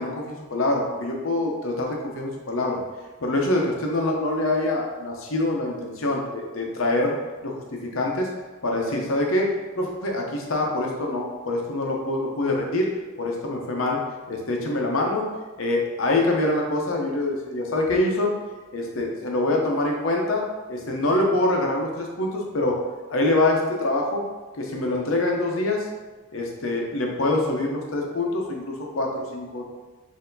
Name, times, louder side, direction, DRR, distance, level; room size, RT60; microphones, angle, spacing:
voice 1, 0.0-2.8 3.2-7.2 7.4-8.3 8.6-12.9 13.2-14.0 14.3-15.3 15.6-18.3 18.7-20.4 20.7-22.8 23.1-24.2 24.6-25.9 26.3-29.6, left 2 dB, 80° left, 0 dB, 0.8 m, -25 dB
4.5 x 2.8 x 3.9 m, 1.3 s
head